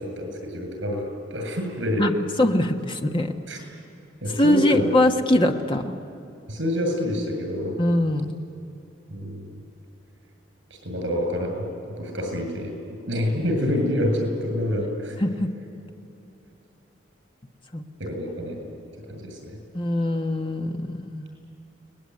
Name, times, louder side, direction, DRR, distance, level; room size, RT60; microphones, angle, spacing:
voice 1, 0.0-2.1 3.5-3.6 4.2-5.1 6.5-7.8 9.1-9.5 10.8-15.2 18.0-18.8 19.1-19.6, equal, 70° right, 3 dB, 7.9 m, -27 dB
voice 2, 2.0-3.4 4.3-5.9 7.8-8.4 15.2-15.5 17.7-17.8 19.7-21.3, left 1 dB, 25° left, 4 dB, 1.3 m, -22 dB
29.5 x 20.0 x 9.8 m, 2.8 s
head